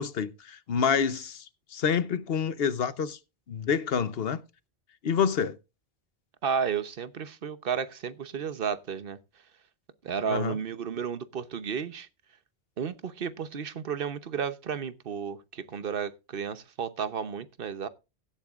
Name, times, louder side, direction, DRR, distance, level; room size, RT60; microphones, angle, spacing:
voice 1, 0.0-1.4 1.7-3.2 3.5-4.4 5.0-5.6 10.3-10.5, left 7 dB, 65° left, 1.1 m, -27 dB
voice 2, 6.4-9.2 10.0-12.1 12.8-17.9, right 7 dB, 60° right, 1.1 m, -32 dB
16.0 x 10.0 x 2.4 m
omnidirectional pair, 1.1 m